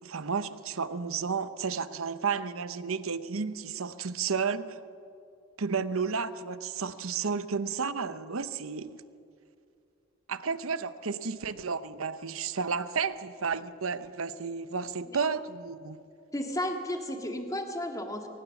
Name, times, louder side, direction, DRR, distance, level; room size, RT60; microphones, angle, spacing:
voice 1, 0.0-4.8 5.6-9.0 10.3-16.0, right 5 dB, 85° right, 0.9 m, -32 dB
voice 2, 16.3-18.3, left 1 dB, 15° left, 2.0 m, -33 dB
23.5 x 19.5 x 7.2 m
head